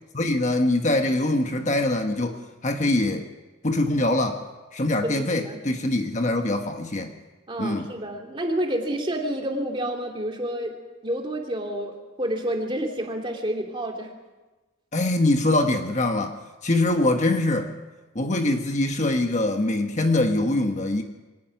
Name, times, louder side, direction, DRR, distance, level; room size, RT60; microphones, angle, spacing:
voice 1, 0.1-3.2 3.6-4.4 4.7-7.1 7.6-7.9 14.9-16.4 16.6-17.7 18.1-21.0, left 2 dB, 35° left, 5 dB, 1.2 m, -23 dB
voice 2, 5.0-5.6 7.5-14.1, right 1 dB, 25° right, 2 dB, 2.5 m, -29 dB
23.5 x 18.5 x 5.9 m, 1.2 s
head